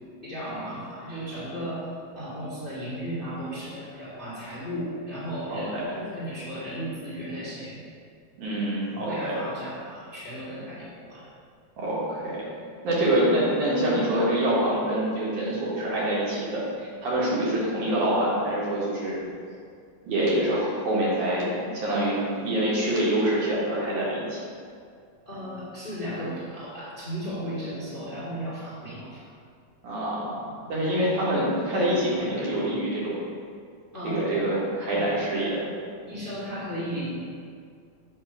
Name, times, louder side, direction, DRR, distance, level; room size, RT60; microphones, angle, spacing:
voice 1, 0.2-1.9 2.1-7.8 8.9-11.3 25.2-29.2 30.5-30.8 33.9-34.6 34.9-35.1 36.0-37.1, equal, 25° left, -12 dB, 1.1 m, -35 dB
voice 2, 5.5-6.0 8.4-9.3 11.8-12.4 12.8-19.2 20.0-24.4 29.8-30.4 30.7-33.2 34.0-35.7, right 1 dB, 70° right, -6 dB, 2.7 m, -26 dB
7.9 x 2.9 x 5.8 m, 2.2 s
omnidirectional pair, 3.9 m